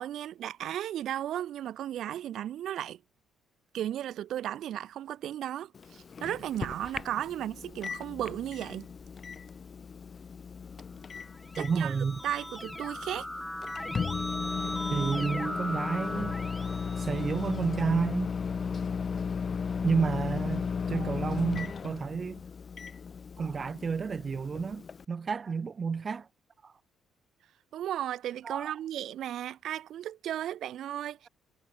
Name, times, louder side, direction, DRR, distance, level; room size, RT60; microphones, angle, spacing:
voice 1, 0.0-3.0 3.7-8.9 11.6-11.9 12.2-13.3 20.9-21.1 27.7-31.3, right 11 dB, 65° right, 4.2 m, -35 dB
Microwave oven, 5.7-25.1, left 6 dB, 35° left, 1.0 m, -36 dB
Keyboard (musical), 11.3-17.9, left 1 dB, 5° left, 5.9 m, -38 dB
voice 2, 11.6-12.2 14.9-16.4 17.0-18.3 19.8-22.4 23.4-26.3 26.6-26.7 28.4-28.7, right 5 dB, 35° right, 4.3 m, -31 dB
cardioid pair, 120°, 0 cm